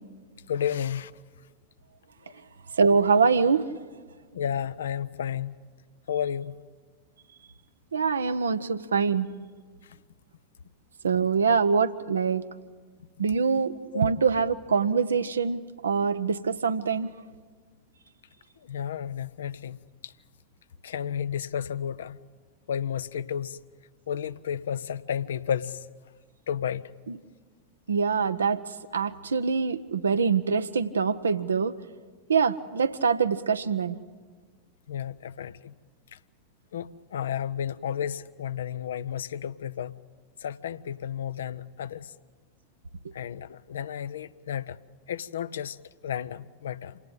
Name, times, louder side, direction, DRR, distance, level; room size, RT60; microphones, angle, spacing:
voice 1, 0.5-1.1 2.3-2.4 4.3-5.6 6.1-6.5 8.6-8.8 9.9-10.0 13.9-14.1 18.6-20.1 20.8-22.2 22.7-23.6 24.1-25.9 26.5-26.9 34.9-35.7 36.1-36.2 36.7-40.0 40.4-42.1 43.1-44.8 45.1-45.8 46.0-47.0, left 9 dB, 65° left, 15 dB, 0.6 m, -32 dB
voice 2, 2.8-3.7 7.9-9.3 11.0-12.4 13.2-17.1 27.1-27.2 27.9-28.6 28.9-31.7 32.3-34.0, right 5 dB, 70° right, 12 dB, 0.8 m, -24 dB
27.0 x 18.0 x 8.9 m, 1.5 s
figure-of-eight pair, 90°, 0 cm